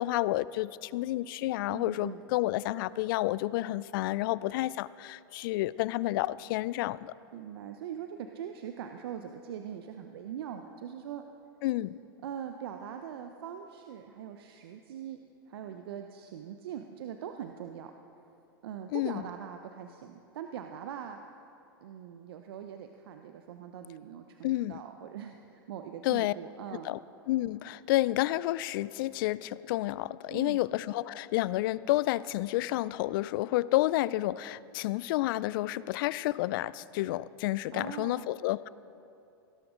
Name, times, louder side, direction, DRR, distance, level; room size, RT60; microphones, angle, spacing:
voice 1, 0.0-7.1 11.6-12.0 18.9-19.2 24.4-24.8 26.0-26.3 26.8-27.0 27.3-38.7, left 16 dB, 60° left, 20 dB, 0.4 m, -30 dB
voice 2, 1.7-2.2 7.3-11.2 12.2-15.2 15.5-17.9 18.6-21.2 21.8-27.0 30.3-30.6 37.7-38.3, right 9 dB, 70° right, 6 dB, 0.7 m, -42 dB
17.0 x 13.0 x 3.8 m, 2.7 s
hypercardioid pair, 105°, 13 cm